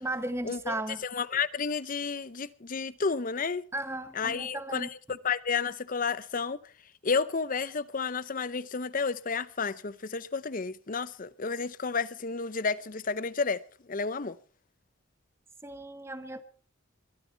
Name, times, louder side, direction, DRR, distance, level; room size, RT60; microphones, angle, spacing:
voice 1, 0.0-1.0 3.7-4.9 15.6-16.4, right 1 dB, 10° right, 1.2 m, -35 dB
voice 2, 1.0-3.7 4.2-6.6 7.0-13.6 13.9-14.4, left 5 dB, 40° left, 0.7 m, -31 dB
22.5 x 13.0 x 4.6 m
head